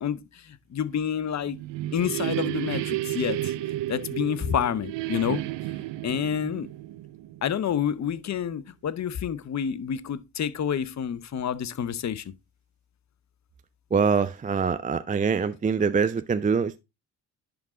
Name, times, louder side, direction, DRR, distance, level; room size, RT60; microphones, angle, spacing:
voice 1, 0.0-1.6 1.9-3.5 3.9-5.4 6.0-6.7 7.4-12.3, left 8 dB, 35° left, 0.8 m, -28 dB
sound 1, 1.2-7.9, right 15 dB, 65° right, 0.7 m, -32 dB
voice 2, 13.9-16.8, right 5 dB, 20° right, 0.4 m, -24 dB
11.0 x 3.8 x 3.6 m
supercardioid pair, 55°, 46 cm